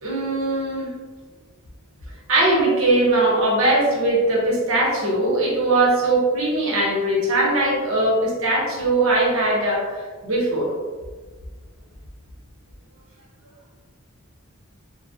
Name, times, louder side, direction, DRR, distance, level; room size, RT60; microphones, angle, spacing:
voice 1, 0.0-0.9 2.3-10.7, right 2 dB, 70° right, -3 dB, 0.9 m, -20 dB
3.7 x 2.2 x 2.7 m, 1.4 s
head